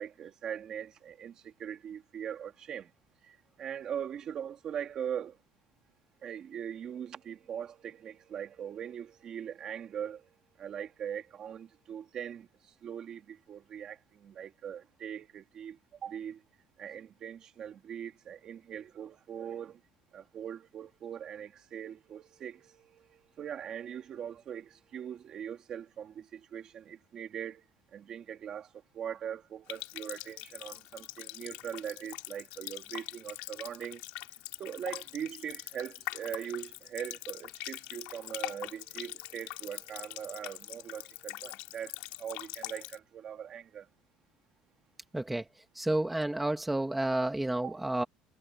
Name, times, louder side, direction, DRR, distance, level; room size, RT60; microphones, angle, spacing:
voice 1, 0.0-2.9 3.6-5.3 6.2-10.2 10.6-12.5 12.8-14.0 14.2-15.8 16.0-16.4 16.8-19.8 20.1-22.6 23.4-27.6 27.9-28.7 28.9-34.0 34.6-41.9 42.2-43.8 47.6-47.8, right 9 dB, 30° right, 2.5 m, -41 dB
Water tap faucet, 29.7-43.0, left 20 dB, 70° left, 2.8 m, -43 dB
voice 2, 45.8-48.0, right 1 dB, 5° right, 1.5 m, -30 dB
cardioid pair, 175°, 2 cm